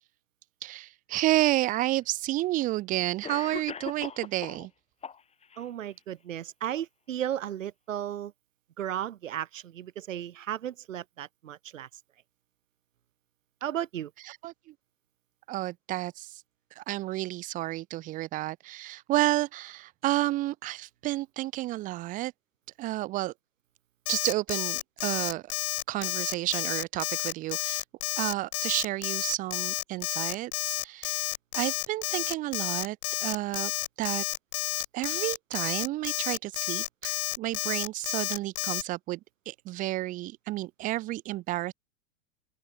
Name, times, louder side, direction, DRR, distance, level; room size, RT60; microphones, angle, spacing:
voice 1, 0.6-4.7 14.2-14.7 15.5-16.4 16.8-22.3 22.8-23.3 24.1-25.5 25.9-27.8 28.2-31.3 31.5-33.0 33.2-33.7 34.0-34.2 34.9-39.2 39.5-41.7, right 17 dB, 20° right, 0.5 m, -31 dB
Cough, 1.5-1.6 2.6-2.7 3.2-4.7 5.0-5.6, left 6 dB, 15° left, 3.3 m, -40 dB
voice 2, 5.6-8.3 8.8-11.9 13.6-14.1, right 11 dB, 85° right, 2.2 m, -35 dB
Alarm, 24.1-38.8, left 22 dB, 45° left, 0.4 m, -31 dB
open air
hypercardioid pair, 125°, 38 cm